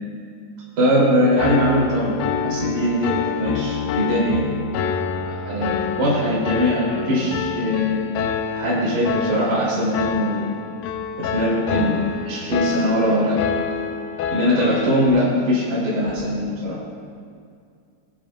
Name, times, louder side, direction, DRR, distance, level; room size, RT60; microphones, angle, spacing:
voice 1, 0.8-3.1 3.4-4.4 5.4-8.0 8.5-10.5 11.2-13.4 14.3-16.7, equal, 55° right, -9 dB, 4.9 m, -21 dB
Piano, 1.4-15.1, left 7 dB, 85° left, 2.3 m, -27 dB
24.5 x 8.9 x 2.6 m, 2.3 s
omnidirectional pair, 4.2 m